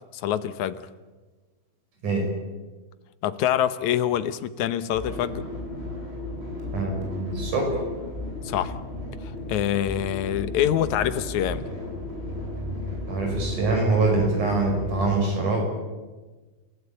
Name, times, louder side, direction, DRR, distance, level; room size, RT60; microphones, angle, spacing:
voice 1, 0.1-0.9 3.2-5.5 8.4-8.8 9.2-11.7, left 11 dB, 75° left, 13 dB, 2.2 m, -25 dB
sound 1, 4.9-15.1, left 1 dB, 20° right, 6.5 m, -34 dB
voice 2, 6.7-7.8 13.1-15.6, right 3 dB, 75° right, 1 dB, 7.4 m, -24 dB
29.5 x 15.5 x 9.0 m, 1.3 s
omnidirectional pair, 3.6 m